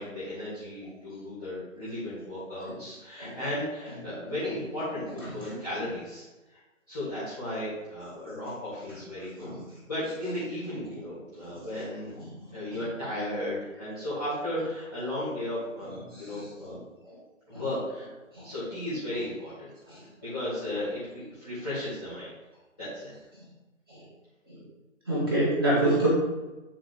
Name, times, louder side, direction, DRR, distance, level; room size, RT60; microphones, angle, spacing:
voice 1, 0.0-6.2 6.5-6.6 6.9-9.5 9.9-12.2 12.4-15.9 16.2-16.8 17.5-18.1 18.4-19.7 20.2-22.3 22.8-23.1, left 1 dB, 5° left, -11 dB, 1.1 m, -35 dB
voice 2, 25.1-26.1, right 2 dB, 15° right, -7 dB, 1.2 m, -26 dB
8.3 x 3.6 x 3.4 m, 1.1 s
figure-of-eight pair, 150°, 40 cm